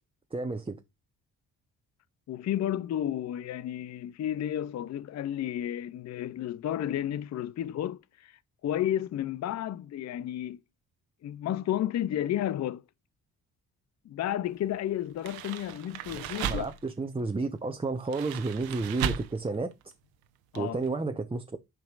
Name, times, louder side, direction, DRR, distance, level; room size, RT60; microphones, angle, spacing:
voice 1, 0.3-0.8 16.2-19.7 20.5-21.6, right 3 dB, 15° right, 0.9 m, -31 dB
voice 2, 2.3-10.6 11.2-12.8 14.1-16.7 20.5-20.8, left 11 dB, 50° left, 0.5 m, -32 dB
sound 1, 15.1-16.9 18.0-19.4 19.7-19.9 20.5-20.6 20.8-20.9, right 8 dB, 90° right, 1.0 m, -35 dB
9.1 x 5.2 x 2.4 m
supercardioid pair, 65°, 36 cm